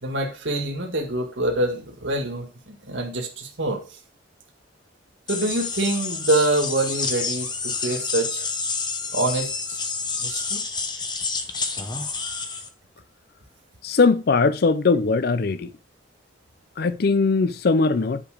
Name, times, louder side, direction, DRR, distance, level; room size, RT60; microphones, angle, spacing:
voice 1, 0.0-4.0 5.3-8.5 9.1-9.8 10.2-10.6, right 2 dB, 75° right, 1.9 m, -26 dB
sound 1, 5.3-12.7, left 4 dB, 25° left, 0.9 m, -29 dB
voice 2, 13.8-15.7 16.8-18.2, left 4 dB, 50° left, 0.4 m, -20 dB
10.0 x 5.0 x 4.9 m
head